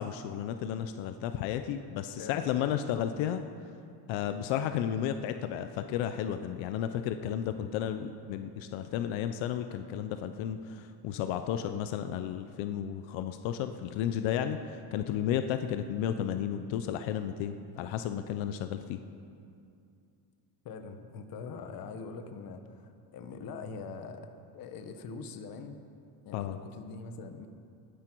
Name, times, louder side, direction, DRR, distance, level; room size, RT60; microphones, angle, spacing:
voice 1, 0.0-3.4 4.1-14.6 14.9-19.0 26.3-26.6, left 10 dB, 85° left, 9 dB, 0.7 m, -33 dB
voice 2, 2.2-3.0 20.6-25.8 26.2-27.5, left 4 dB, 50° left, 7 dB, 1.1 m, -43 dB
18.5 x 10.0 x 4.6 m, 2.5 s
cardioid pair, 160°, 45 cm